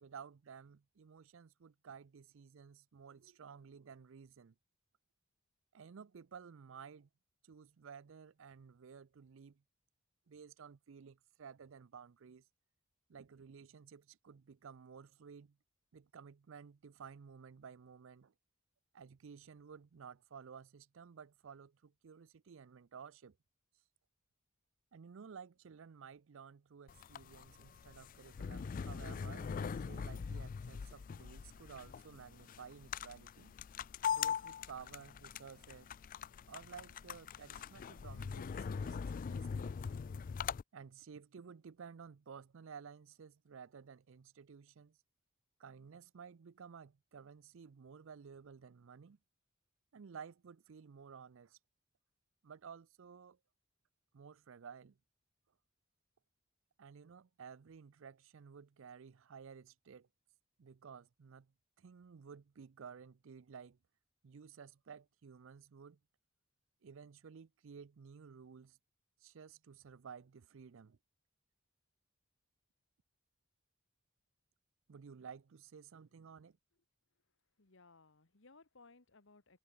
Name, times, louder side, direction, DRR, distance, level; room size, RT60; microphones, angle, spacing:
voice 1, 0.0-4.5 5.7-7.1 7.4-9.6 10.3-12.4 13.1-15.6 15.9-18.3 18.9-23.4 24.9-33.5 34.1-35.9 36.5-39.7 40.7-45.0 45.6-49.2 49.9-51.6 52.4-53.4 54.1-55.0 56.8-60.1 60.6-63.8 64.2-66.0 66.8-68.8 69.2-71.0 74.9-76.6, right 6 dB, 65° right, 0.5 m, -54 dB
sound 1, 26.9-40.6, left 7 dB, 40° left, 0.3 m, -42 dB
voice 2, 77.6-79.6, left 3 dB, 65° left, 1.7 m, -62 dB
head